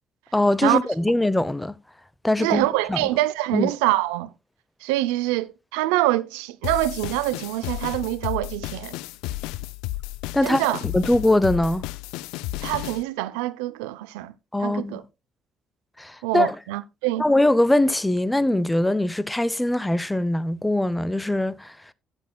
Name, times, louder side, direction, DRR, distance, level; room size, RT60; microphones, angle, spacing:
voice 1, 0.3-1.7 2.2-3.0 3.5-3.7 10.3-11.8 14.5-15.0 16.0-16.6 17.2-21.7, left 1 dB, 10° left, 0.7 m, -22 dB
voice 2, 2.4-4.3 4.8-8.9 10.4-10.8 12.6-14.3 14.6-15.0 16.2-17.2, right 16 dB, 90° right, 0.5 m, -25 dB
sound 1, 6.6-13.0, left 17 dB, 85° left, 0.4 m, -33 dB
16.5 x 7.0 x 2.2 m
supercardioid pair, 65°, 0 cm